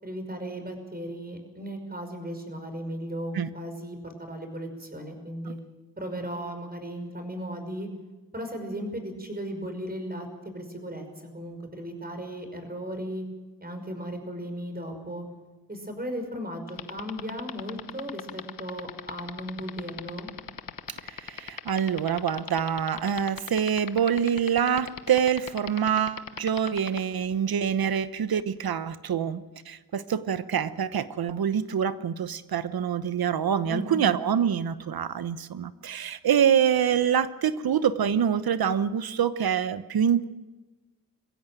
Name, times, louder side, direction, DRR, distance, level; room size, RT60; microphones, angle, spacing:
voice 1, 0.0-5.6 6.0-7.9 8.3-13.2 13.6-15.2 15.7-20.3 33.7-34.1, equal, 25° right, 6 dB, 5.6 m, -36 dB
sound 1, 16.7-27.0, left 8 dB, 60° left, 1.2 m, -36 dB
voice 2, 20.9-40.2, right 8 dB, 70° right, 14 dB, 1.1 m, -26 dB
22.5 x 15.5 x 9.2 m, 1.2 s
cardioid pair, 65°, 38 cm